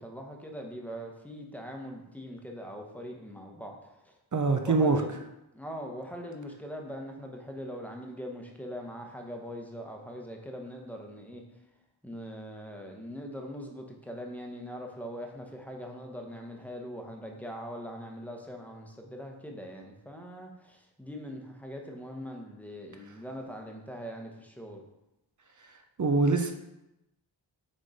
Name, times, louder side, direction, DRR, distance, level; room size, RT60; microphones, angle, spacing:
voice 1, 0.0-4.2 4.6-5.1 5.5-11.4 12.0-24.8, equal, 5° left, 1 dB, 1.0 m, -41 dB
voice 2, 4.3-5.0 26.0-26.5, right 3 dB, 40° right, 5 dB, 0.6 m, -24 dB
6.4 x 3.7 x 4.1 m, 0.90 s
wide cardioid pair, 75°, 47 cm